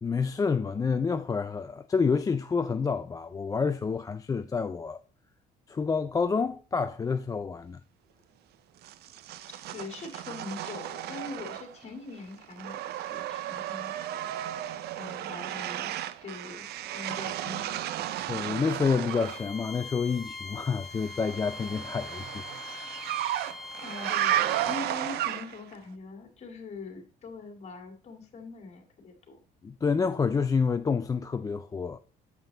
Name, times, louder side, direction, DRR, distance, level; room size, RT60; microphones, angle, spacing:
voice 1, 0.0-5.0 5.7-7.8 18.3-22.9 29.6-32.0, left 5 dB, 20° left, 0.4 m, -28 dB
sound 1, 8.8-11.9 12.2-19.5 21.0-25.7, right 12 dB, 70° right, 0.5 m, -34 dB
voice 2, 9.7-13.9 15.0-15.9 16.2-18.1 23.8-29.4, left 3 dB, 40° left, 2.1 m, -42 dB
Bowed string instrument, 19.1-24.8, left 3 dB, ahead, 1.2 m, -43 dB
7.4 x 5.6 x 3.8 m
cardioid pair, 110°, 17 cm